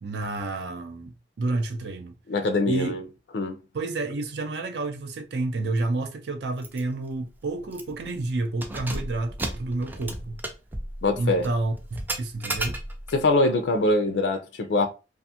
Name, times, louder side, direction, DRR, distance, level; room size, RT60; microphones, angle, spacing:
voice 1, 0.0-2.1 2.7-2.9 3.7-10.4 11.1-11.7 12.2-12.8, right 2 dB, 70° right, 0.5 m, -29 dB
voice 2, 2.3-3.0 3.3-3.6 11.0-11.5 13.1-14.9, left 2 dB, 80° left, 0.5 m, -23 dB
Keys jangling, 6.6-6.8 7.1-7.2 7.7-8.1 8.5-13.2, right 1 dB, 10° right, 0.3 m, -34 dB
2.5 x 2.3 x 2.7 m
head